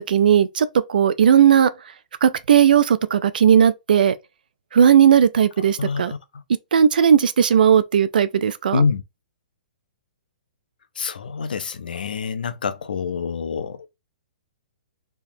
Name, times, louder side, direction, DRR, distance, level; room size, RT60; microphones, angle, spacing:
voice 1, 0.1-1.7 2.2-4.1 4.7-6.1 6.7-8.8, right 8 dB, 75° right, 0.5 m, -16 dB
voice 2, 5.6-6.4 8.7-9.0 10.9-13.9, left 5 dB, 85° left, 0.6 m, -26 dB
3.5 x 2.9 x 2.6 m
hypercardioid pair, 140°, 5 cm